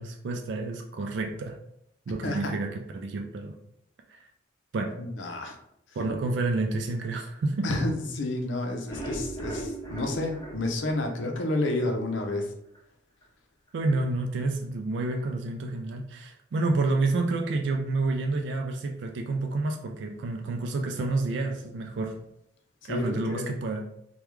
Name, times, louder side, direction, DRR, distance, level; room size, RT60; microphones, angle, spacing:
voice 1, 0.0-1.6 2.1-3.5 4.1-4.2 4.7-5.0 6.0-7.7 13.7-22.2 22.9-23.9, right 2 dB, 70° right, 3 dB, 0.3 m, -29 dB
voice 2, 5.0-5.6 7.6-12.5 22.8-23.5, left 2 dB, 80° left, 3 dB, 0.6 m, -30 dB
sound 1, 8.7-11.9 12.3-12.4 12.7-12.8 13.2-13.3, right 1 dB, 20° left, 0.9 m, -38 dB
3.4 x 2.2 x 3.0 m, 0.76 s
head